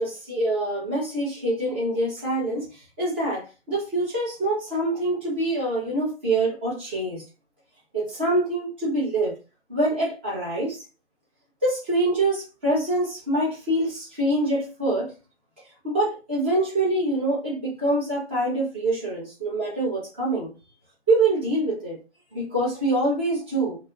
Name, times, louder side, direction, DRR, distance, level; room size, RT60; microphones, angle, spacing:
voice 1, 0.0-7.2 7.9-9.4 9.7-10.8 11.6-15.1 15.8-20.5 21.1-22.0 22.3-23.8, right 1 dB, 10° right, 0.6 m, -25 dB
2.4 x 2.4 x 2.8 m
figure-of-eight pair, 145°, 33 cm